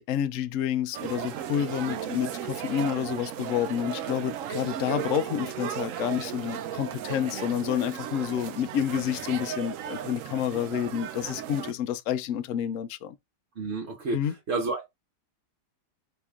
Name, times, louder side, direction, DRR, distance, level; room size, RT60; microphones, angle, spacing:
voice 1, 0.0-13.1 14.1-14.3, left 9 dB, 70° left, 0.7 m, -29 dB
sound 1, 0.9-11.7, right 10 dB, 70° right, 0.8 m, -35 dB
voice 2, 13.6-14.8, right 3 dB, 50° right, 1.1 m, -30 dB
4.4 x 2.9 x 3.5 m
omnidirectional pair, 1.8 m